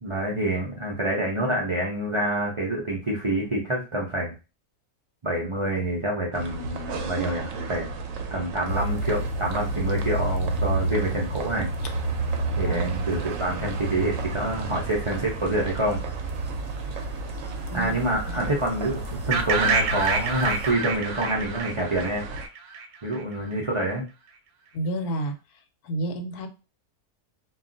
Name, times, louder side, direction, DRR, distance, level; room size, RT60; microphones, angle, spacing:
voice 1, 0.0-4.3 5.2-7.9 8.3-11.7 12.6-16.0 17.7-22.2 23.0-24.0, right 1 dB, 55° right, -3 dB, 0.3 m, -27 dB
sound 1, 6.3-22.5, right 4 dB, 70° right, 0.9 m, -36 dB
sound 2, 8.7-20.7, right 1 dB, 60° left, 0.7 m, -31 dB
voice 2, 12.6-13.2 17.7-17.9 18.3-18.5 24.7-25.3 25.8-26.5, right 1 dB, 85° left, 7 dB, 1.1 m, -31 dB
sound 3, 19.3-23.2, right 5 dB, 85° right, 1.1 m, -27 dB
2.4 x 2.3 x 3.8 m, 0.31 s
omnidirectional pair, 1.6 m